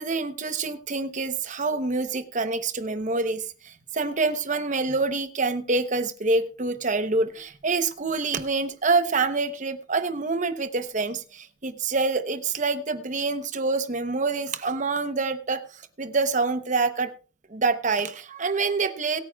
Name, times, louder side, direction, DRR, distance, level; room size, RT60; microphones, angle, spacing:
voice 1, 0.0-17.1 17.5-19.2, right 3 dB, 40° right, 10 dB, 0.8 m, -26 dB
22.5 x 9.0 x 2.3 m, 0.37 s
head